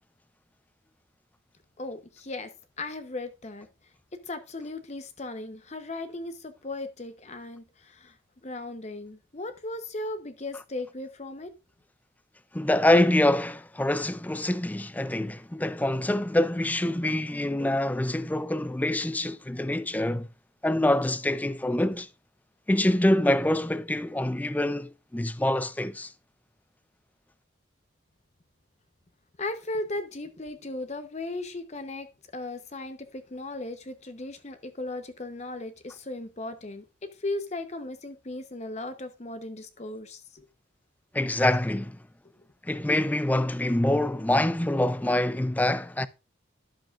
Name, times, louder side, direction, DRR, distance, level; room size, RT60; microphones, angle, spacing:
voice 1, 1.8-2.5 2.8-3.7 4.3-8.2 8.4-11.5 29.4-32.1 32.3-40.5, left 2 dB, 35° left, 0.7 m, -37 dB
voice 2, 12.5-20.3 20.6-22.1 22.7-26.1 41.1-42.0 42.6-46.1, left 1 dB, 10° left, 0.3 m, -25 dB
11.5 x 7.6 x 2.4 m
head